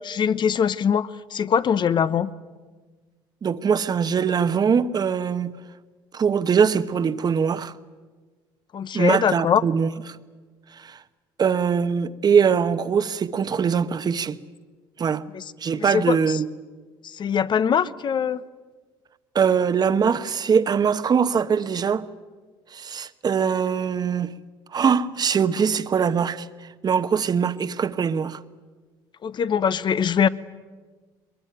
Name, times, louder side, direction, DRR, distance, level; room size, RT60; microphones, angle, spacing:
voice 1, 0.1-2.3 8.7-9.6 15.3-15.4 15.9-16.2 17.1-18.4 29.2-30.3, left 7 dB, 45° left, 1.0 m, -22 dB
voice 2, 3.4-5.5 6.1-7.7 8.9-9.9 10.8-11.0 11.4-14.4 15.0-15.2 15.6-16.5 19.3-22.1 22.7-24.3 24.7-26.5 26.8-28.4, right 6 dB, 40° right, 1.1 m, -22 dB
22.0 x 21.5 x 9.3 m
supercardioid pair, 75°, 11 cm